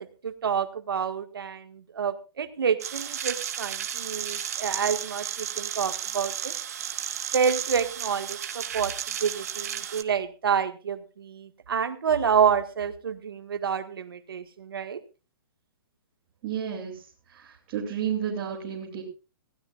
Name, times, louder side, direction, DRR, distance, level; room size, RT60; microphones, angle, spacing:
voice 1, 0.0-6.5 7.3-15.0, right 7 dB, 80° right, 9 dB, 1.8 m, -28 dB
sound 1, 2.8-10.0, right 9 dB, 40° right, 1.5 m, -33 dB
voice 2, 16.4-17.0 17.3-19.0, right 8 dB, 25° right, -4 dB, 2.9 m, -31 dB
20.5 x 16.0 x 2.5 m, 0.32 s
hypercardioid pair, 180°, 12 cm